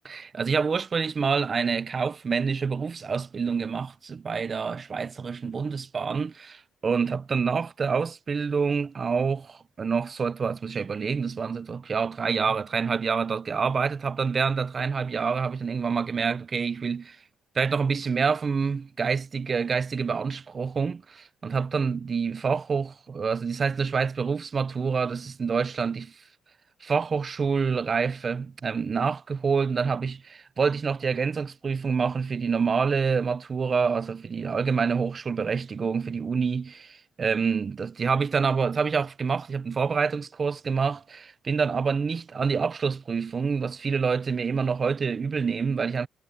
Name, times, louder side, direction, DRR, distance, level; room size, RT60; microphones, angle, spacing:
voice 1, 0.0-17.2 17.6-26.1 26.8-46.1, right 5 dB, 30° right, 0.5 m, -27 dB
cardioid pair, 140°, 0 cm